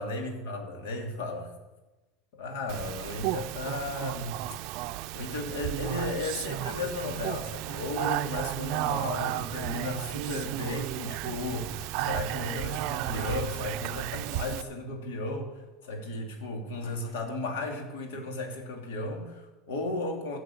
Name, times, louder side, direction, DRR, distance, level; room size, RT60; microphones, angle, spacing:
voice 1, 0.0-1.5 2.3-4.4 5.1-20.4, left 2 dB, 85° left, 2 dB, 2.9 m, -35 dB
Speech, 2.7-14.6, right 15 dB, 55° right, 0.5 m, -33 dB
14.5 x 6.4 x 8.7 m, 1.1 s
supercardioid pair, 140°, 0 cm